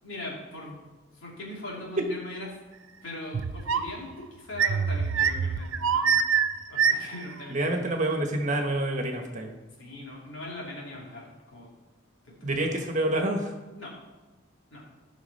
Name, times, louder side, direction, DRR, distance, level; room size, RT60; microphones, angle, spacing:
voice 1, 0.0-0.8 1.1-2.5 3.0-6.1 6.7-7.8 9.8-11.7 12.2-12.8 13.8-13.9 14.7-14.8, left 1 dB, 70° left, -3 dB, 3.1 m, -40 dB
sound 1, 3.3-4.0 4.5-7.3, right 7 dB, 75° right, 0.6 m, -25 dB
voice 2, 7.5-9.6 12.4-13.5, right 1 dB, 35° right, 3 dB, 1.3 m, -27 dB
15.0 x 6.0 x 4.2 m, 1.1 s
head